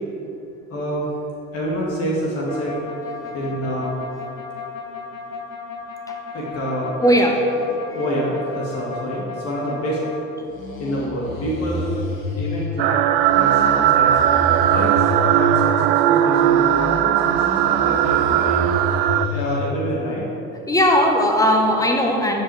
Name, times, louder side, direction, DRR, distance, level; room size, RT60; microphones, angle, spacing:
voice 1, 0.7-1.1 1.5-2.8 3.3-3.9 6.3-6.9 7.9-10.0 10.8-11.9 12.4-13.0 13.3-14.1 14.7-18.6 19.3-20.2, equal, 35° left, -5 dB, 2.3 m, -27 dB
sound 1, 2.5-10.1 10.5-12.7 13.1-15.7 16.2-19.6, left 3 dB, 75° left, 1.6 m, -30 dB
voice 2, 7.0-7.4 20.7-22.4, equal, 10° left, 2 dB, 1.3 m, -17 dB
sound 2, 12.8-19.3, right 11 dB, 45° right, 0.4 m, -18 dB
13.0 x 7.8 x 3.5 m, 2.9 s
figure-of-eight pair, 65°, 40 cm